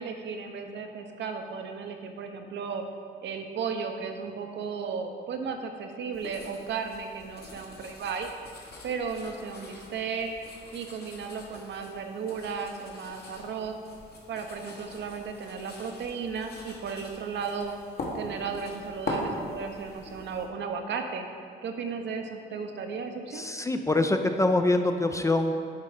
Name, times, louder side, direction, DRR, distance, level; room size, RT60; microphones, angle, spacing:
voice 1, 0.0-2.8 3.2-8.3 8.8-10.3 10.7-13.8 14.3-17.7 18.1-21.3 21.6-23.5, right 5 dB, 65° right, 5 dB, 0.7 m, -35 dB
sound 1, 6.1-20.5, left 2 dB, 55° left, 1.4 m, -42 dB
voice 2, 23.3-25.5, left 2 dB, 15° left, 6 dB, 0.4 m, -24 dB
8.2 x 3.8 x 4.9 m, 2.5 s
cardioid pair, 90°, 20 cm